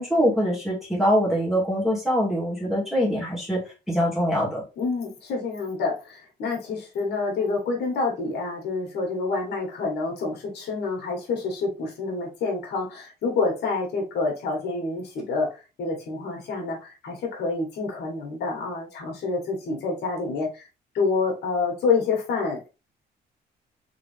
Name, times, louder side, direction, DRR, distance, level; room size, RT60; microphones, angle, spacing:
voice 1, 0.0-3.6 3.9-4.6, equal, ahead, -4 dB, 1.9 m, -23 dB
voice 2, 4.8-20.7 20.9-22.7, left 4 dB, 70° left, 0 dB, 1.6 m, -28 dB
3.7 x 3.6 x 3.3 m, 0.29 s
cardioid pair, 165°, 18 cm